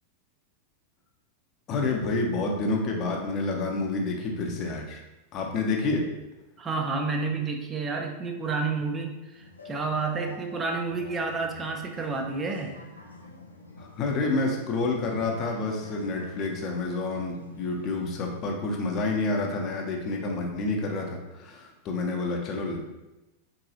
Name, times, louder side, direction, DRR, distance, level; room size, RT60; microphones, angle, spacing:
voice 1, 1.7-5.0 5.3-6.0 13.8-22.8, left 3 dB, 35° left, 1 dB, 0.7 m, -29 dB
voice 2, 6.6-12.8, right 4 dB, 20° right, 3 dB, 0.4 m, -30 dB
sound 1, 9.3-18.3, left 2 dB, 80° left, 0.5 m, -47 dB
3.8 x 2.7 x 2.8 m, 1.0 s
figure-of-eight pair, 90°, 0 cm